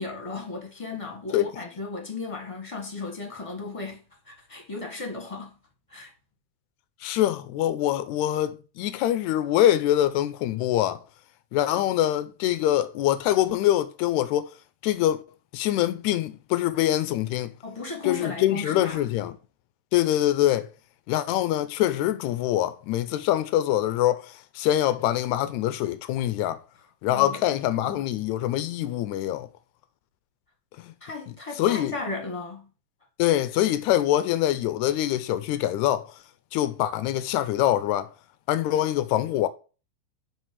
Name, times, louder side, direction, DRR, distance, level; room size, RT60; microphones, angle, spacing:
voice 1, 0.0-5.5 5.9-6.1 17.6-19.0 27.1-27.4 27.7-28.0 31.0-32.7, left 3 dB, 15° left, 1.0 m, -35 dB
voice 2, 7.0-11.0 11.5-14.5 14.8-15.2 15.5-17.5 18.0-19.4 19.9-20.7 21.1-26.6 27.0-29.5 30.8-30.9 31.6-32.0 33.2-36.1 36.5-38.1 38.5-39.5, left 13 dB, 85° left, 2.0 m, -24 dB
9.1 x 3.2 x 4.7 m
omnidirectional pair, 3.4 m